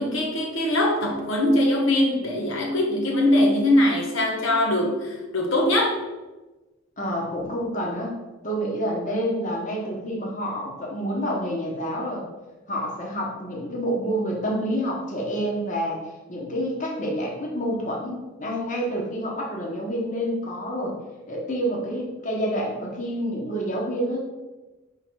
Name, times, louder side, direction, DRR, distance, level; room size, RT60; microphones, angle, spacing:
voice 1, 0.0-6.0, left 1 dB, 75° left, 0 dB, 0.9 m, -22 dB
voice 2, 7.0-8.1 8.4-12.2 12.7-16.0 16.3-21.0 21.3-24.2, equal, 40° left, -2 dB, 1.1 m, -28 dB
5.3 x 3.8 x 4.6 m, 1.1 s
head